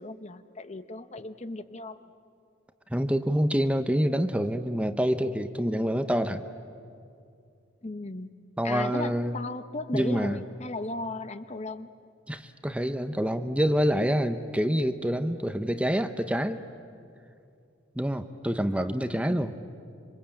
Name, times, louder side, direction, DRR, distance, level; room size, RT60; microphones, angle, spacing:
voice 1, 0.0-2.1 7.8-11.9 19.2-19.5, left 2 dB, 35° left, 11 dB, 0.9 m, -37 dB
voice 2, 2.9-6.4 8.6-9.4 9.9-10.4 12.3-16.6 18.0-19.5, equal, 5° right, 9 dB, 0.7 m, -27 dB
26.0 x 25.0 x 8.8 m, 2.4 s
head